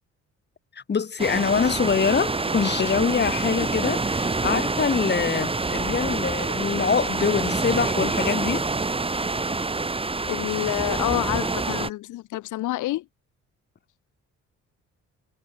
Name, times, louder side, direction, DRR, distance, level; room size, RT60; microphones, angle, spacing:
voice 1, 0.8-8.7, left 6 dB, 35° left, 1.9 m, -24 dB
sound 1, 1.2-11.9, right 3 dB, 20° right, 2.0 m, -27 dB
voice 2, 10.3-13.0, left 16 dB, 80° left, 0.8 m, -28 dB
cardioid pair, 90°, 30 cm